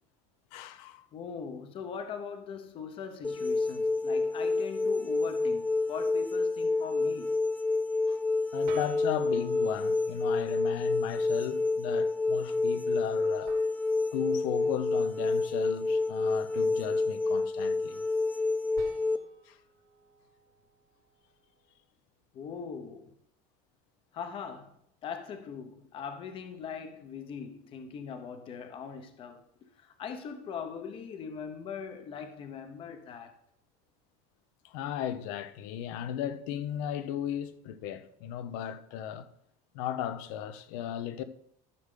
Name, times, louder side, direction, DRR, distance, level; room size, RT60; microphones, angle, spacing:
voice 1, 0.5-1.1 8.1-8.2 8.5-13.5 14.1-18.0 19.5-19.6 34.6-39.3 39.7-41.2, left 10 dB, 75° left, 0.8 m, -36 dB
voice 2, 1.1-7.3 22.3-23.1 24.1-24.7 25.0-33.3, left 6 dB, 30° left, 0.9 m, -41 dB
sound 1, 3.2-19.2, left 3 dB, 10° left, 0.3 m, -29 dB
sound 2, 4.2-4.4 8.7-11.0 13.5-16.0 18.7-21.8, right 6 dB, 75° right, 2.5 m, -54 dB
13.5 x 6.5 x 3.8 m
cardioid pair, 170°, 17 cm